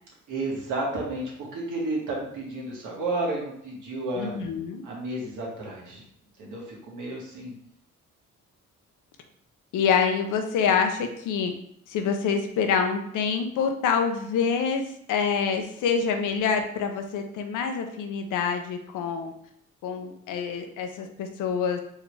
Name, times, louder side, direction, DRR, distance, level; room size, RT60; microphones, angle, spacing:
voice 1, 0.3-4.3 4.8-6.0 6.4-7.5, right 2 dB, 80° right, -3 dB, 1.7 m, -32 dB
voice 2, 4.1-4.8 9.7-11.5 11.9-14.8 15.1-19.3 19.8-21.8, left 6 dB, 85° left, 5 dB, 0.7 m, -26 dB
4.6 x 3.4 x 3.3 m, 0.70 s
cardioid pair, 90°, 30 cm